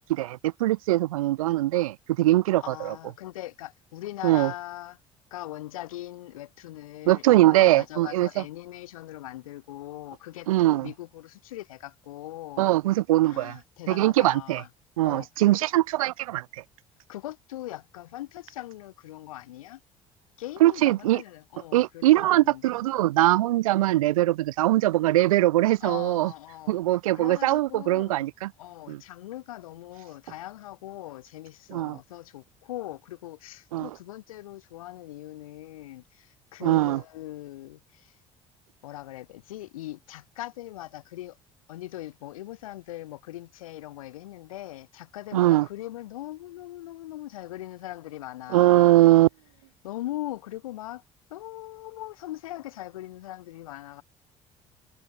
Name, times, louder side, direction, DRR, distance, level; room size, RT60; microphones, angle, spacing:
voice 1, 0.1-2.9 4.2-4.5 7.1-8.3 10.5-10.9 12.6-13.6 13.9-14.6 15.0-16.6 20.6-21.2 21.7-26.3 26.7-28.5 28.9-29.0 31.7-32.0 33.7-33.9 36.6-37.0 45.3-45.7 48.5-49.3, right 16 dB, 85° right, 0.6 m, -21 dB
voice 2, 2.6-5.0 5.3-12.7 13.3-14.7 15.0-15.3 17.1-19.8 20.4-22.7 25.8-26.8 27.1-28.2 28.6-38.2 38.8-41.4 41.7-49.0 49.8-51.0 51.3-54.0, left 15 dB, 85° left, 2.1 m, -40 dB
hypercardioid pair, 55°, 17 cm